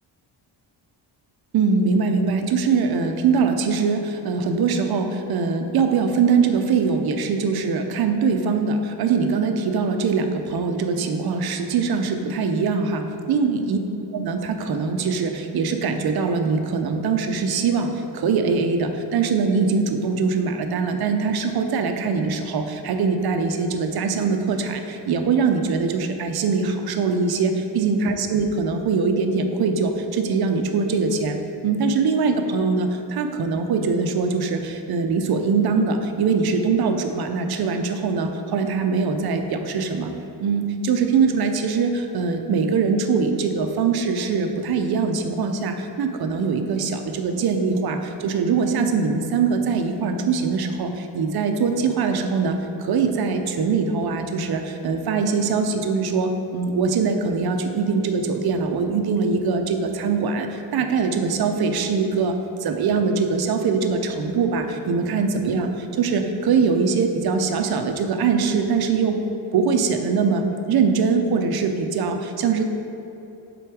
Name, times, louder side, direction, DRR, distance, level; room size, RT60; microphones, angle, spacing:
voice 1, 1.5-13.8 14.1-40.1 40.4-69.2 69.5-72.6, right 5 dB, 55° right, 6 dB, 0.6 m, -22 dB
8.0 x 3.9 x 4.7 m, 3.0 s
cardioid pair, 150°, 46 cm